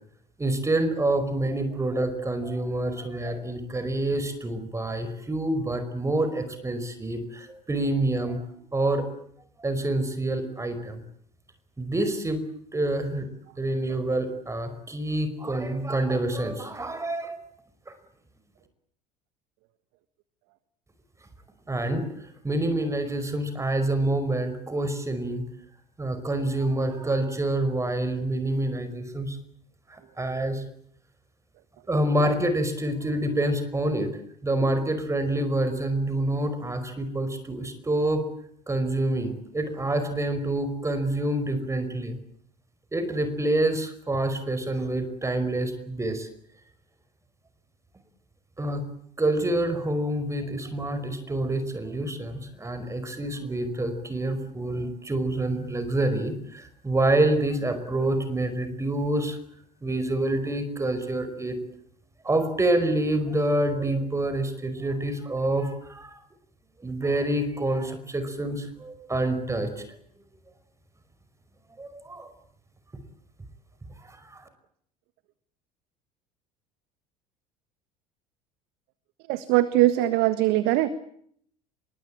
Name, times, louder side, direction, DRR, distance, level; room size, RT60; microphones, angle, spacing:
voice 1, 0.4-8.4 8.7-9.1 9.6-11.0 11.8-12.4 12.7-13.3 13.6-17.5 17.9-18.0 21.7-22.1 22.4-25.4 26.0-29.4 29.9-30.6 31.9-34.1 34.4-38.2 38.7-42.2 42.9-46.3 48.6-48.8 49.2-59.4 59.8-61.6 62.2-66.2 66.8-69.8 71.8-72.3 74.0-74.4, right 1 dB, 15° right, 10 dB, 5.2 m, -27 dB
voice 2, 79.3-80.9, right 15 dB, 55° right, 13 dB, 1.6 m, -21 dB
26.5 x 23.0 x 8.8 m, 0.66 s
figure-of-eight pair, 65°, 20 cm